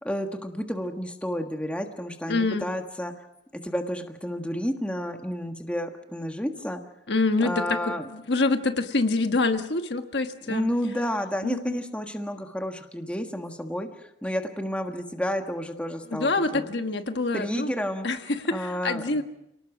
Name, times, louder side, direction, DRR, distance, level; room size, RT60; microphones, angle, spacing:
voice 1, 0.0-3.2 3.5-6.8 7.4-8.1 10.5-16.7 17.3-18.1 18.5-19.2, equal, 5° left, 5 dB, 1.5 m, -31 dB
voice 2, 2.3-2.7 7.1-7.8 8.1-10.7 11.4-11.8 16.1-17.7 18.0-19.2, left 3 dB, 65° left, 7 dB, 1.4 m, -26 dB
29.0 x 18.5 x 6.1 m, 0.85 s
head